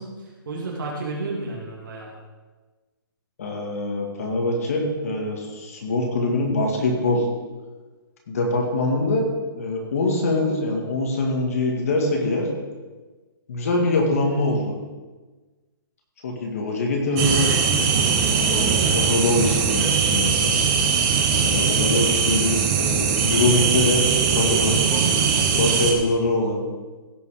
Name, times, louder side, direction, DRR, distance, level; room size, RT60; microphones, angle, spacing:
voice 1, 0.0-2.1, right 2 dB, 60° right, -3 dB, 2.7 m, -32 dB
voice 2, 3.4-7.2 8.3-9.3 9.5-12.5 13.5-14.7 16.2-17.5 18.3-20.5 21.4-24.8 25.5-26.6, left 2 dB, 40° left, 1 dB, 1.9 m, -23 dB
sound 1, 17.2-25.9, right 6 dB, 15° right, 0.6 m, -20 dB
16.5 x 5.5 x 5.0 m, 1.3 s
hypercardioid pair, 175°, 12 cm